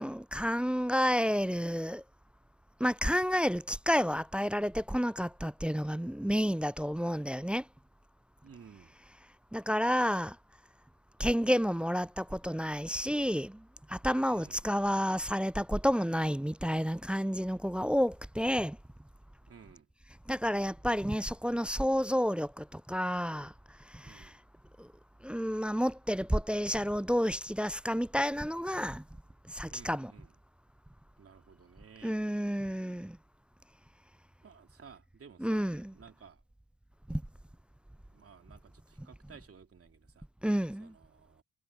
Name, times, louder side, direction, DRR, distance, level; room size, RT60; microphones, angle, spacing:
voice 1, 0.0-2.0 2.8-7.6 9.5-10.4 11.2-13.6 13.9-18.8 20.3-23.5 23.9-24.3 24.8-24.9 25.2-29.0 29.5-30.1 32.0-33.2 35.4-35.9 37.1-37.2 40.4-40.9, equal, 5° right, 0.3 m, -30 dB
voice 2, 8.4-9.0 14.2-14.7 19.5-19.9 24.0-24.4 29.7-30.4 31.2-32.2 34.4-36.4 38.1-40.2 40.8-41.4, right 6 dB, 50° right, 3.2 m, -55 dB
hypercardioid pair, 45°, 30 cm